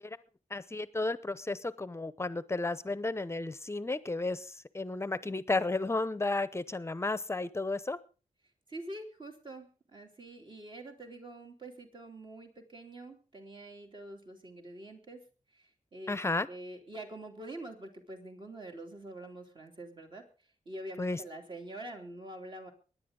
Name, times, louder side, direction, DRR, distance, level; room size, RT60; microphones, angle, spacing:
voice 1, 0.5-4.5 4.7-8.0 16.1-16.5 21.0-21.2, left 2 dB, 20° left, 16 dB, 0.7 m, -33 dB
voice 2, 8.7-15.2 15.5-16.2 16.5-20.3 20.7-22.7, right 1 dB, 40° right, 3 dB, 2.9 m, -45 dB
24.0 x 10.5 x 3.8 m, 0.35 s
wide cardioid pair, 120°, 13 cm